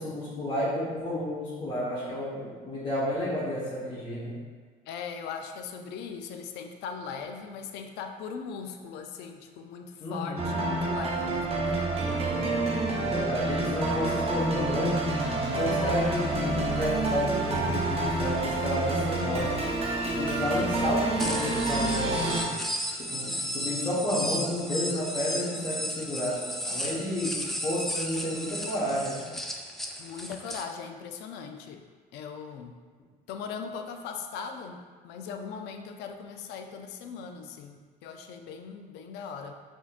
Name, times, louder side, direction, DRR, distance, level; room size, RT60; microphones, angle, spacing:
voice 1, 0.0-4.4 10.0-10.5 13.0-15.0 15.6-19.6 20.0-22.5 23.0-27.3 27.6-29.3, left 1 dB, 30° left, -8 dB, 1.1 m, -31 dB
voice 2, 4.9-12.2 30.0-31.9 32.1-32.8 33.3-39.5, left 6 dB, 85° left, 5 dB, 0.4 m, -39 dB
sound 1, 10.4-22.4, right 2 dB, 35° right, 0.7 m, -28 dB
sound 2, 21.2-30.6, equal, ahead, 0.3 m, -34 dB
6.2 x 2.8 x 2.4 m, 1.5 s
cardioid pair, 110°, 17 cm